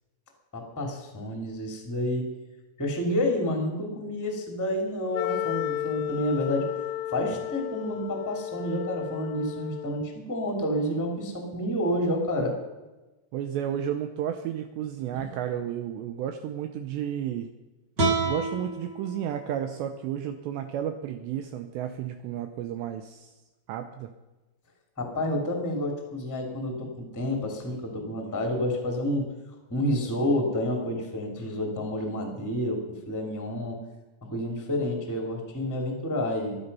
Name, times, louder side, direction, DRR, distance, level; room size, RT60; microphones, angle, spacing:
voice 1, 0.5-2.3 2.8-6.7 7.1-12.6 15.1-15.2 25.0-29.3 29.7-33.8 34.2-36.6, left 1 dB, 10° left, 2 dB, 0.8 m, -29 dB
Wind instrument woodwind instrument, 5.1-10.2, left 12 dB, 85° left, 3.0 m, -33 dB
voice 2, 13.3-17.5 18.2-23.4 23.7-24.1, right 10 dB, 85° right, 7 dB, 2.5 m, -32 dB
sound 1, 18.0-21.1, right 3 dB, 35° right, 1.9 m, -31 dB
14.5 x 12.5 x 5.5 m, 1.1 s
omnidirectional pair, 5.9 m